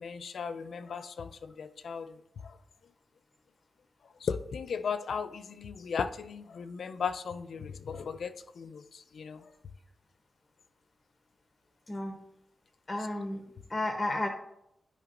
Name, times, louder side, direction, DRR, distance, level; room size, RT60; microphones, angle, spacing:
voice 1, 0.0-2.1 4.2-8.8 9.2-9.4, left 6 dB, 80° left, 10 dB, 0.4 m, -36 dB
voice 2, 12.9-14.3, left 1 dB, 25° left, 3 dB, 0.7 m, -33 dB
11.0 x 4.9 x 2.5 m, 0.78 s
wide cardioid pair, 130°, 0 cm